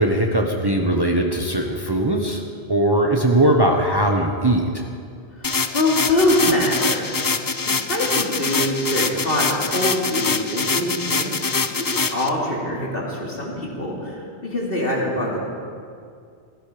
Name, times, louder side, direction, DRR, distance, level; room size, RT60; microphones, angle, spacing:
voice 1, 0.0-2.4 2.7-4.8, right 1 dB, 25° right, 2 dB, 1.0 m, -19 dB
voice 2, 5.3-7.1 7.5-11.4 11.7-15.4, left 1 dB, 60° left, -3 dB, 2.9 m, -24 dB
sound 1, 5.4-12.3, left 4 dB, 30° left, 0.4 m, -24 dB
16.0 x 15.5 x 5.1 m, 2.3 s
omnidirectional pair, 1.1 m